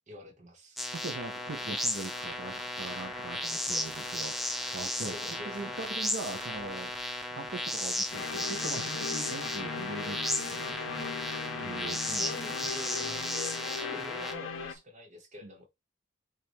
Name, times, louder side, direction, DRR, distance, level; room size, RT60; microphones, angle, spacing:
voice 1, 0.1-0.8 5.0-5.8 12.2-15.7, left 1 dB, 40° right, 1.2 m, -45 dB
sound 1, 0.8-14.3, left 1 dB, ahead, 0.6 m, -35 dB
voice 2, 0.9-4.3 4.7-6.9 7.3-11.2 11.5-12.4 15.4-15.7, right 3 dB, 65° right, 0.7 m, -41 dB
sound 2, 1.1-14.8, left 3 dB, 60° left, 1.7 m, -51 dB
sound 3, 8.1-14.7, left 6 dB, 85° left, 0.7 m, -38 dB
5.3 x 2.5 x 3.6 m
head